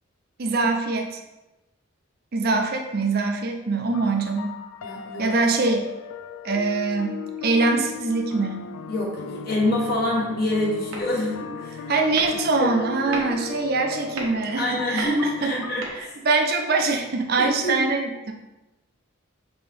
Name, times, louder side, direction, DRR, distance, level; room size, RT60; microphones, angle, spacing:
voice 1, 0.4-1.2 2.3-4.6 5.2-5.9 6.4-8.7 11.9-15.7 15.9-18.3, right 3 dB, 45° right, 3 dB, 0.5 m, -23 dB
sound 1, 3.9-15.8, left 6 dB, 75° left, 0.3 m, -37 dB
voice 2, 4.8-5.3 8.9-11.9 12.6-12.7 13.1-13.4 14.6-16.1 17.4-17.8, left 1 dB, 45° left, -3 dB, 1.0 m, -26 dB
sound 2, 7.9-8.2 10.9-11.4 11.7-11.9 12.2-16.1, right 2 dB, 85° right, 0.9 m, -38 dB
5.4 x 2.9 x 3.3 m, 1.0 s
head